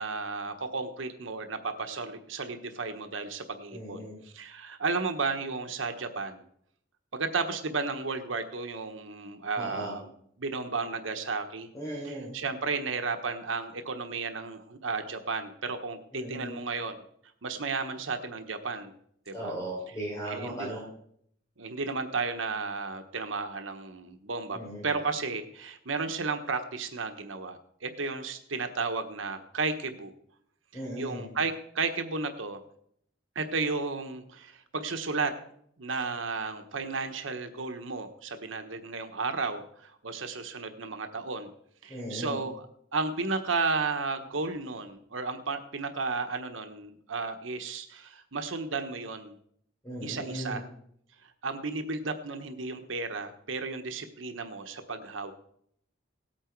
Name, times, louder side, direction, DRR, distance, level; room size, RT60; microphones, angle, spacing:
voice 1, 0.0-6.4 7.1-10.1 10.4-11.7 12.0-17.0 17.4-18.9 19.3-19.5 20.3-20.7 21.6-30.1 30.7-32.6 33.3-35.3 35.8-41.5 41.8-42.5 42.9-49.3 50.0-50.6 51.4-55.3, right 4 dB, 90° right, 7 dB, 1.2 m, -33 dB
voice 2, 3.7-4.2 9.6-9.9 11.7-12.3 16.1-16.6 19.3-20.8 24.5-24.9 30.7-31.3 41.9-42.4 49.8-50.6, right 1 dB, 15° left, -4 dB, 4.1 m, -37 dB
17.5 x 9.0 x 4.6 m, 0.67 s
head